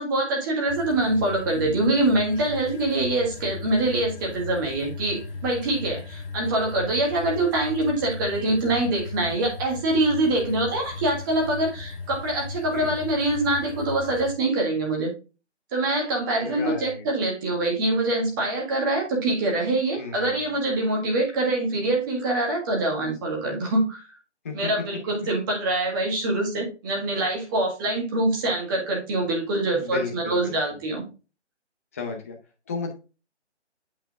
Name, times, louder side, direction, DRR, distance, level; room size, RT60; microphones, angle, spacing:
voice 1, 0.0-15.1 15.7-24.0 24.5-31.0, right 2 dB, 20° right, 0 dB, 1.8 m, -24 dB
sound 1, 0.7-14.3, left 4 dB, 50° left, 2.4 m, -37 dB
voice 2, 16.4-17.0 20.0-20.5 24.4-24.7 29.7-30.8 31.9-32.4 32.7-32.9, left 4 dB, 15° left, 2 dB, 0.7 m, -34 dB
8.3 x 4.3 x 3.5 m, 0.31 s
figure-of-eight pair, 160°, 35 cm